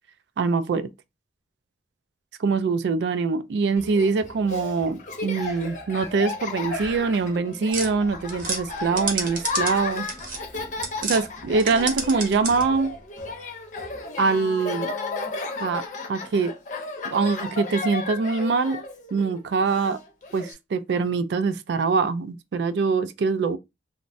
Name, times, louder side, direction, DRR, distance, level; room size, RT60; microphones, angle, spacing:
voice 1, 0.4-0.9 2.4-10.1 11.0-12.9 14.2-14.9 15.6-15.8 16.1-16.5 17.0-18.8 19.1-20.0 20.3-23.6, right 4 dB, 75° right, 0.3 m, -24 dB
Laughter, 3.8-20.5, left 4 dB, 45° left, 0.6 m, -34 dB
Breathing, 5.3-6.0 6.7-7.3, equal, 20° right, 0.9 m, -41 dB
sound 1, 7.7-11.2 11.5-12.8, right 3 dB, 50° right, 0.8 m, -31 dB
2.9 x 2.1 x 2.6 m
head